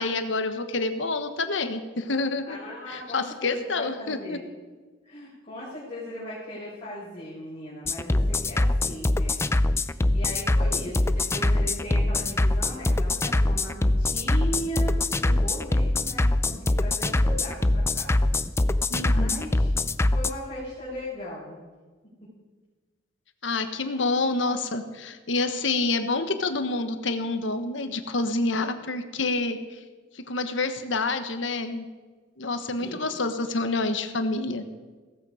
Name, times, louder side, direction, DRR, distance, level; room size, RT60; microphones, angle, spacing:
voice 1, 0.0-2.6 2.9-4.4 18.9-19.5 23.4-29.8 30.1-31.8 32.4-34.6, left 3 dB, 70° left, 8 dB, 1.3 m, -28 dB
voice 2, 2.5-4.4 5.0-18.3 19.0-19.7 20.1-21.6 22.0-22.3 32.7-33.0, equal, 30° left, -9 dB, 6.0 m, -38 dB
sound 1, 7.9-20.3, left 2 dB, 15° left, 0.4 m, -23 dB
16.5 x 14.5 x 5.0 m, 1.4 s
head